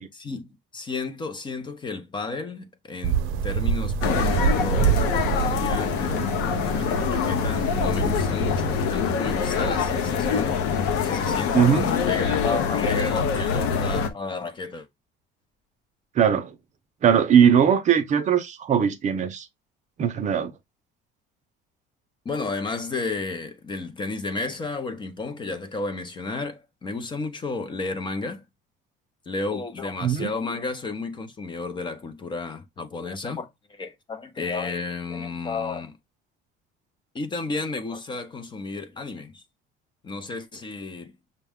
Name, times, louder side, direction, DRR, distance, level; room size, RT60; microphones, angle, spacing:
voice 1, 0.1-6.3 6.6-10.6 11.0-14.9 22.2-28.4 29.3-36.0 37.1-39.4 40.0-41.1, left 3 dB, 20° left, 0.6 m, -32 dB
sound 1, 3.0-8.2, right 7 dB, 85° right, 0.7 m, -26 dB
street sounds Seoul, 4.0-14.1, left 6 dB, 90° left, 0.9 m, -24 dB
voice 2, 11.5-11.9 16.2-16.5 17.0-19.5 20.0-20.5 30.0-30.3, right 8 dB, 35° right, 0.6 m, -20 dB
6.2 x 2.3 x 3.5 m
cardioid pair, 155°, 21 cm